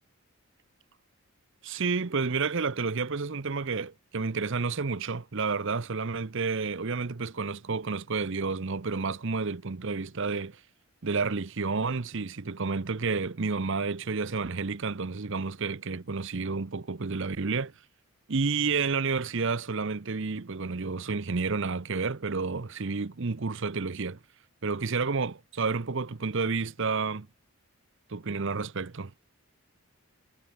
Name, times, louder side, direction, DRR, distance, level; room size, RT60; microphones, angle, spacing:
voice 1, 1.6-10.6 11.0-17.9 18.3-24.2 24.6-27.3 28.1-29.1, right 4 dB, 55° right, 0.8 m, -30 dB
head